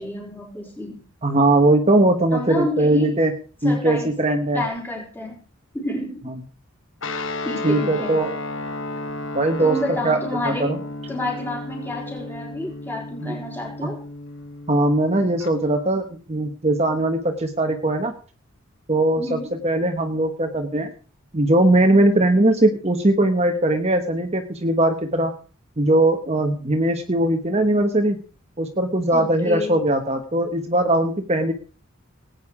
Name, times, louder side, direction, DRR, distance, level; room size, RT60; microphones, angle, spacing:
voice 1, 0.0-1.1 2.3-3.1 3.6-4.2 4.5-5.4 5.7-6.2 7.4-8.2 9.6-10.7 11.1-14.0 19.2-19.5 29.1-29.8, left 1 dB, 10° left, 0 dB, 4.7 m, -30 dB
voice 2, 1.2-3.3 3.6-4.6 7.6-8.3 9.3-9.8 10.0-10.2 10.4-10.8 13.2-13.4 13.8-13.9 14.7-18.1 18.9-19.4 19.6-20.9 21.3-25.3 25.8-28.2 28.6-31.5, right 1 dB, 30° right, 5 dB, 1.1 m, -20 dB
Guitar, 7.0-15.5, left 2 dB, 60° left, 1.2 m, -33 dB
18.5 x 9.2 x 4.9 m, 0.39 s
head